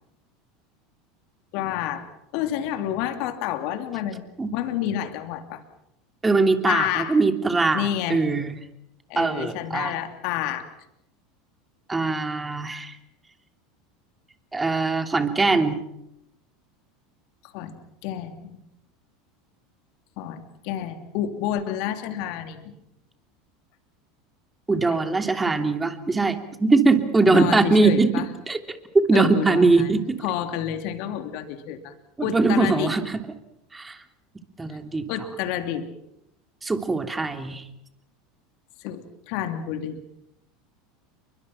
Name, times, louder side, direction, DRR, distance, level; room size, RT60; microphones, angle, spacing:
voice 1, 1.5-2.1 2.3-5.6 6.7-7.2 7.7-8.2 9.1-10.7 17.5-17.8 18.0-18.6 20.2-22.7 24.8-25.0 27.2-28.3 29.1-29.9 30.2-31.9 32.2-32.9 35.1-35.9 38.8-40.0, left 10 dB, 60° left, 7 dB, 2.9 m, -29 dB
voice 2, 6.2-8.6 9.2-9.9 11.9-12.9 14.5-15.8 24.7-28.6 28.9-30.2 32.2-33.1 33.7-34.0 34.6-35.0 36.6-37.6, right 3 dB, 15° right, 6 dB, 3.1 m, -21 dB
29.5 x 24.0 x 5.9 m, 0.81 s
hypercardioid pair, 80°, 0 cm